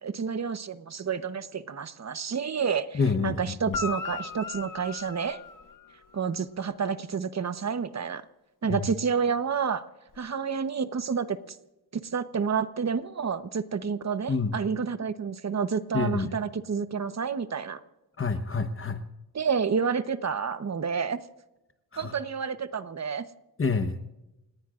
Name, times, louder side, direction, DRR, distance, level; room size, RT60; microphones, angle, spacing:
voice 1, 0.0-5.4 6.1-8.2 8.6-9.9 10.2-11.6 11.9-17.8 19.3-21.2 22.0-23.3, right 6 dB, 40° right, 11 dB, 1.1 m, -29 dB
voice 2, 2.9-3.4 3.6-3.8 8.7-8.8 14.3-14.5 15.9-16.3 18.2-19.0 21.9-22.1 23.6-24.0, left 4 dB, 35° left, 8 dB, 1.2 m, -27 dB
Guitar, 3.7-6.2 10.1-10.2, left 5 dB, 55° left, 1.2 m, -37 dB
29.0 x 18.5 x 2.5 m, 0.97 s
cardioid pair, 100°, 39 cm